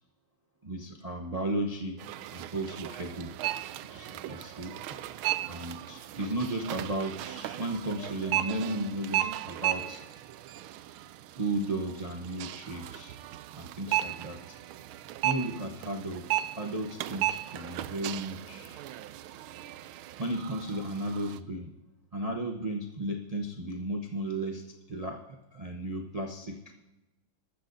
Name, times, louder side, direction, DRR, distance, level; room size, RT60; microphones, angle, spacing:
voice 1, 0.6-2.0 2.3-3.3 3.9-5.0 5.4-10.0 11.4-13.1 13.5-14.6 15.2-18.8 20.2-21.7 22.1-25.2 25.5-26.6, right 1 dB, 35° right, 1 dB, 0.6 m, -34 dB
sound 1, 2.0-21.4, right 13 dB, 85° right, 1.4 m, -36 dB
19.5 x 13.5 x 2.7 m, 0.97 s
omnidirectional pair, 2.3 m